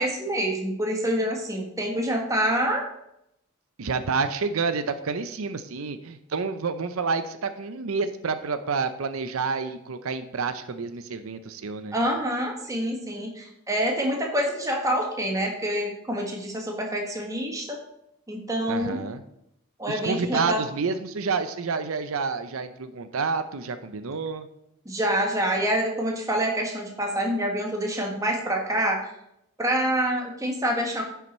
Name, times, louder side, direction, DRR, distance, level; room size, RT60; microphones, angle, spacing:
voice 1, 0.0-2.8 11.9-17.8 18.3-19.0 19.8-20.6 24.8-29.0 29.6-31.0, right 1 dB, 15° right, 1 dB, 1.5 m, -26 dB
voice 2, 3.8-12.0 18.7-19.2 19.9-24.5, right 4 dB, 80° right, 10 dB, 0.6 m, -29 dB
10.5 x 5.8 x 4.3 m, 0.80 s
head